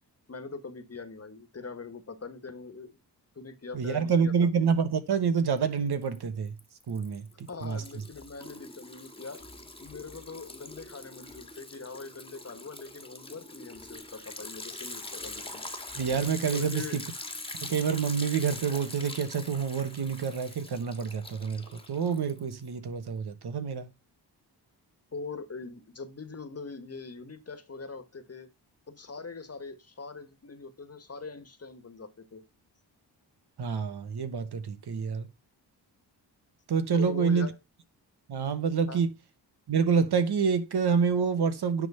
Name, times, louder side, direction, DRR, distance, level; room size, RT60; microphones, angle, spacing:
voice 1, 0.3-3.0 3.4-4.5 7.5-15.7 16.5-17.0 25.1-28.5 28.9-32.4 36.9-37.6 38.9-39.0, left 4 dB, 35° left, 1.6 m, -42 dB
voice 2, 3.7-6.6 6.9-7.8 16.0-17.0 17.6-23.9 33.6-35.3 36.7-37.5 38.3-39.1 39.7-41.9, right 6 dB, 65° right, 1.4 m, -27 dB
Liquid, 5.6-6.2 6.5-22.7, left 2 dB, 15° left, 1.7 m, -43 dB
9.8 x 3.7 x 5.6 m
cardioid pair, 75°, 42 cm